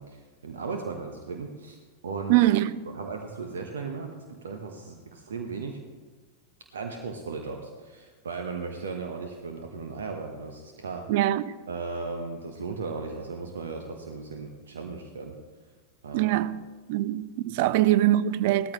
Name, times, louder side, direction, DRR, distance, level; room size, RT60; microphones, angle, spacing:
voice 1, 0.0-1.8 2.0-2.4 2.9-5.8 6.7-11.1 11.7-15.4 16.0-16.3 17.6-17.8, right 4 dB, 65° right, 1.1 m, -36 dB
voice 2, 2.3-2.8 11.1-11.6 16.1-16.6 16.9-18.7, right 14 dB, 50° right, 0.5 m, -23 dB
18.0 x 13.5 x 3.1 m
figure-of-eight pair, 90°, 0 cm